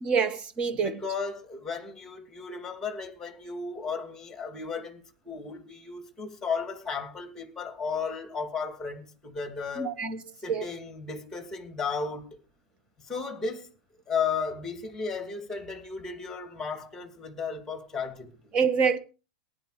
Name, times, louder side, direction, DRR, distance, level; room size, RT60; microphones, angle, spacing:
voice 1, 0.0-1.0 9.8-10.6 18.5-19.0, right 6 dB, 20° right, 1.4 m, -26 dB
voice 2, 0.8-10.0 10.4-12.4 13.0-13.7 14.1-18.5, left 5 dB, 10° left, 2.7 m, -34 dB
18.5 x 10.5 x 5.0 m
supercardioid pair, 170°, 5 cm